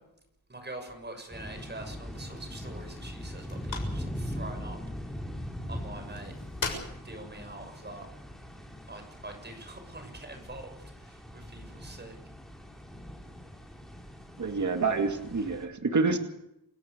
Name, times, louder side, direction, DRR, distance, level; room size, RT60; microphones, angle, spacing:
voice 1, 0.5-4.8 5.7-6.3 7.0-8.1 8.9-12.1, right 2 dB, 30° right, 6 dB, 6.6 m, -44 dB
sound 1, 0.7-10.6, left 4 dB, 60° left, 7.1 m, -45 dB
sound 2, 1.3-15.6, equal, ahead, 5.1 m, -41 dB
voice 2, 14.4-16.2, right 4 dB, 55° right, 5 dB, 2.4 m, -27 dB
29.0 x 18.0 x 6.8 m, 0.83 s
wide cardioid pair, 145°, 36 cm